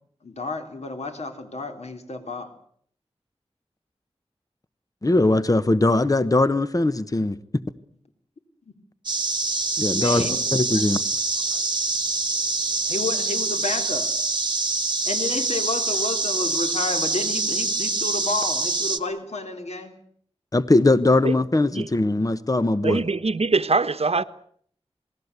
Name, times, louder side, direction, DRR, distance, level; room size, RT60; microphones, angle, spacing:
voice 1, 0.2-2.5 9.9-10.5 11.5-11.6 12.9-14.1 15.1-20.0, left 3 dB, 80° left, 3.7 m, -31 dB
voice 2, 5.0-7.4 9.8-11.0 20.5-23.0, left 2 dB, 30° left, 1.1 m, -20 dB
sound 1, 9.1-19.0, right 3 dB, 45° right, 1.6 m, -25 dB
voice 3, 22.8-24.2, right 3 dB, 65° right, 1.2 m, -22 dB
27.5 x 19.5 x 8.3 m
wide cardioid pair, 70°, 11 cm